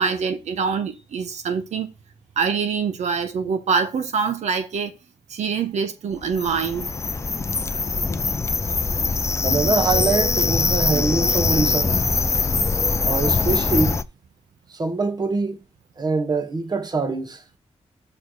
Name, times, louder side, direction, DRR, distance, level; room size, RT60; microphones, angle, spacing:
voice 1, 0.0-1.9 2.4-4.9 5.3-6.9, right 5 dB, 80° right, 1.0 m, -24 dB
sound 1, 6.2-14.0, left 4 dB, 25° left, 0.5 m, -22 dB
voice 2, 9.4-12.0 13.0-14.0 14.7-15.6 16.0-17.4, right 3 dB, 35° right, 1.5 m, -24 dB
6.6 x 4.9 x 6.4 m
wide cardioid pair, 110°, 12 cm